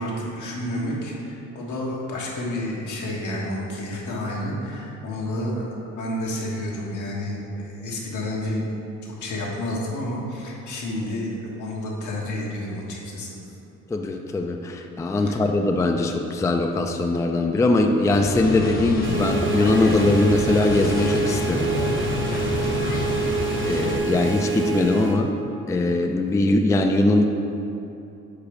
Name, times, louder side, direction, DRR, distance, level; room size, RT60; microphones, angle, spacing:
voice 1, 0.0-8.6 9.2-13.4 15.2-15.3, left 1 dB, 80° left, -4 dB, 1.4 m, -30 dB
voice 2, 13.9-21.7 23.6-25.3 25.7-27.2, left 2 dB, 10° left, 4 dB, 0.3 m, -21 dB
sound 1, 18.1-24.0, left 2 dB, 30° left, 0.7 m, -27 dB
sound 2, 19.0-25.2, right 5 dB, 40° right, 0.8 m, -27 dB
4.8 x 4.5 x 5.1 m, 2.8 s
cardioid pair, 90°, 30 cm